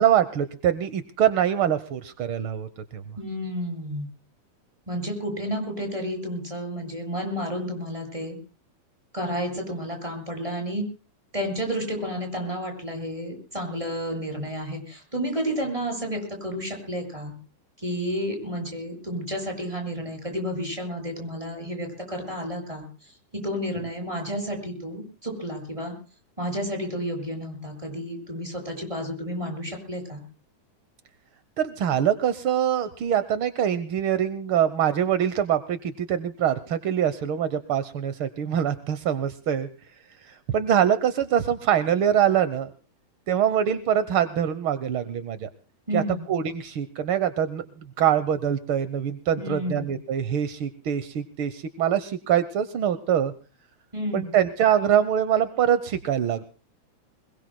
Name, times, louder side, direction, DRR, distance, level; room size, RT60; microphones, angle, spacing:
voice 1, 0.0-3.2 31.6-39.7 40.2-42.7 43.3-45.5 45.9-46.0 46.3-47.6 48.0-53.3 54.1-56.4, right 9 dB, 70° right, 12 dB, 1.2 m, -24 dB
voice 2, 3.2-4.1 4.9-8.4 9.1-10.9 11.3-17.3 17.8-25.9 26.4-30.2 45.9-46.3 49.4-49.9 53.9-54.3, equal, 10° right, 3 dB, 7.9 m, -31 dB
26.0 x 22.0 x 2.2 m, 0.36 s
omnidirectional pair, 3.6 m